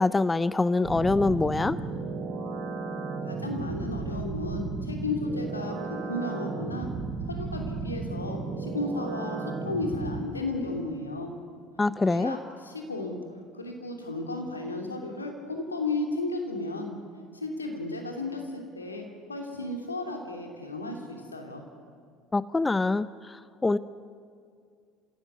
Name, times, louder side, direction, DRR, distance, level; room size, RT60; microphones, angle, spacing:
voice 1, 0.0-1.8 11.8-12.4 22.3-23.1 23.6-23.8, left 3 dB, 15° left, 17 dB, 0.7 m, -24 dB
sound 1, 0.8-10.2, right 4 dB, 50° right, 4.9 m, -34 dB
voice 2, 3.2-6.9 7.3-11.3 12.1-13.2 13.5-16.9 17.3-21.6, left 2 dB, 90° left, 3 dB, 2.9 m, -34 dB
29.5 x 16.5 x 9.5 m, 2.3 s
figure-of-eight pair, 60°, 0 cm